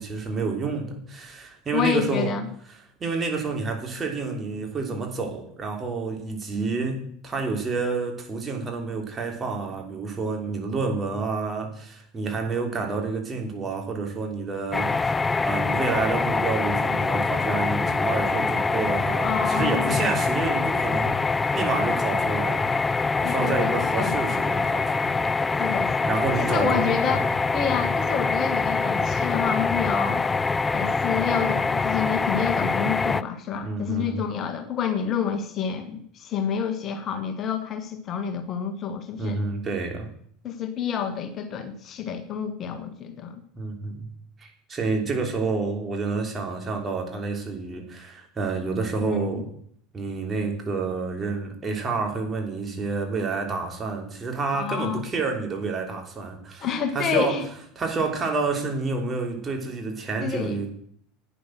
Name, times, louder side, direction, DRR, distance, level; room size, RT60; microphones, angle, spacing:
voice 1, 0.0-2.3 3.0-25.2 26.0-27.2 33.6-34.2 39.2-40.1 43.6-44.1 44.4-49.5 49.9-56.7 56.9-57.4 57.8-60.7, right 4 dB, 25° right, 2 dB, 3.1 m, -29 dB
voice 2, 1.7-2.5 19.2-20.1 23.2-24.1 25.6-30.2 30.7-39.4 40.4-43.4 49.0-49.4 54.5-55.0 56.6-57.5 60.2-60.7, left 7 dB, 40° left, 7 dB, 1.5 m, -29 dB
sound 1, 14.7-33.2, left 4 dB, 20° left, 0.4 m, -24 dB
11.0 x 9.3 x 6.3 m, 0.64 s
figure-of-eight pair, 70°, 0 cm